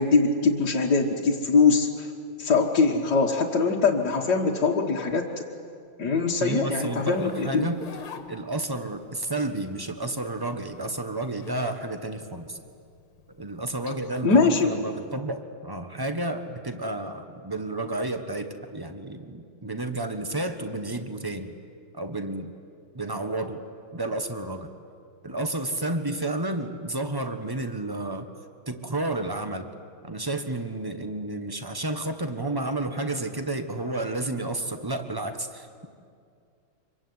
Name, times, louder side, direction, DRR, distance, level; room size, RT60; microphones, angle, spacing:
voice 1, 0.0-2.1 2.4-5.4 6.0-7.7 14.2-14.7, left 4 dB, 50° left, -3 dB, 2.0 m, -22 dB
voice 2, 6.4-7.8 8.3-12.6 13.4-21.5 21.9-22.5 22.9-23.6 23.9-24.7 25.2-28.3 28.7-29.7 30.0-35.9, right 2 dB, 15° right, 7 dB, 1.0 m, -31 dB
Zipper (clothing), 6.9-9.0 10.1-11.8 12.2-14.6, left 5 dB, 85° left, 2.5 m, -43 dB
25.5 x 23.5 x 9.6 m, 2.3 s
omnidirectional pair, 2.4 m